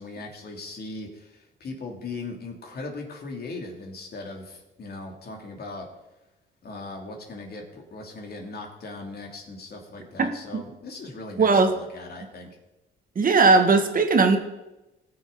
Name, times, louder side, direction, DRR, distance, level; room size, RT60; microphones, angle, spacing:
voice 1, 0.0-5.9 6.6-12.6, left 3 dB, 55° left, 1 dB, 2.9 m, -39 dB
voice 2, 11.4-11.7 13.2-14.4, right 4 dB, 45° right, 6 dB, 1.7 m, -18 dB
19.0 x 6.8 x 4.1 m, 0.99 s
cardioid pair, 90°, 20 cm